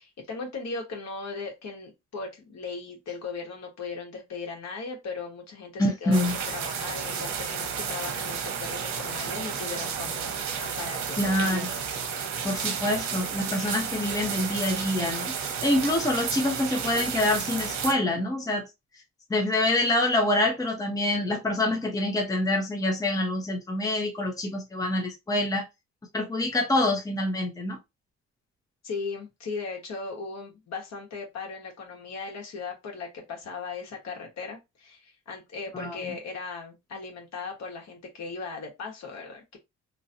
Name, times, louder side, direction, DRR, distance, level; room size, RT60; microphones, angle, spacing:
voice 1, 0.0-11.8 28.8-39.6, left 4 dB, 60° left, 1.5 m, -38 dB
voice 2, 5.8-6.3 11.2-11.7 12.4-18.7 19.3-25.6 26.1-27.8 35.7-36.0, left 1 dB, 10° left, 0.8 m, -26 dB
sound 1, 6.1-17.9, right 6 dB, 65° right, 0.9 m, -32 dB
3.0 x 2.7 x 2.7 m
cardioid pair, 110°, 30 cm